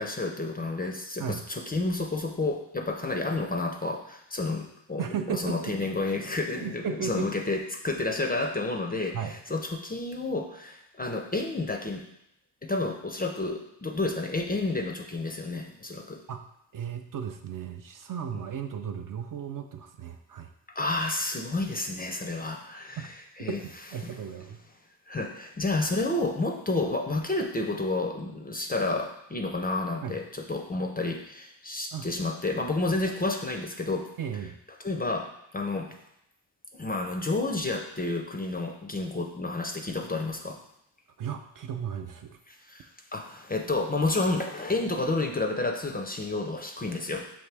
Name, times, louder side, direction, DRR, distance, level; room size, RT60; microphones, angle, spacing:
voice 1, 0.0-5.0 5.3-9.2 9.5-12.0 12.6-16.2 20.7-23.1 23.4-23.6 25.1-34.1 34.8-36.0 36.7-40.6 42.7-47.3, left 2 dB, 20° left, 3 dB, 0.4 m, -30 dB
voice 2, 5.0-5.9 6.6-7.3 9.1-9.4 16.3-16.4 16.7-20.5 23.0-23.1 23.5-24.6 30.0-30.2 31.9-32.1 34.2-34.6 41.2-42.4, right 7 dB, 50° right, 6 dB, 0.4 m, -35 dB
5.8 x 2.6 x 3.3 m, 0.79 s
cardioid pair, 80°, 45 cm